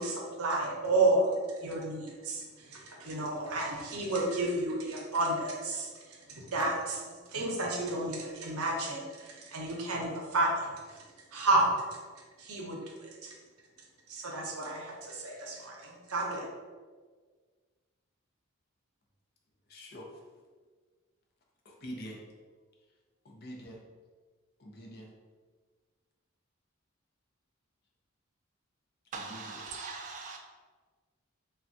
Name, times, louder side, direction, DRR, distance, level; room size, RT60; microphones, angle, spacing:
voice 1, 0.0-1.3 1.6-7.0 7.3-11.0 11.3-11.9 12.4-13.3 14.1-16.4, right 2 dB, 90° right, -2 dB, 0.7 m, -31 dB
voice 2, 19.7-20.1 21.7-22.2 23.2-23.8 24.6-25.1 29.3-29.4, equal, 45° left, -1 dB, 0.5 m, -44 dB
voice 3, 29.1-30.4, right 4 dB, 35° right, 1 dB, 0.3 m, -41 dB
3.2 x 2.2 x 2.6 m, 1.5 s
head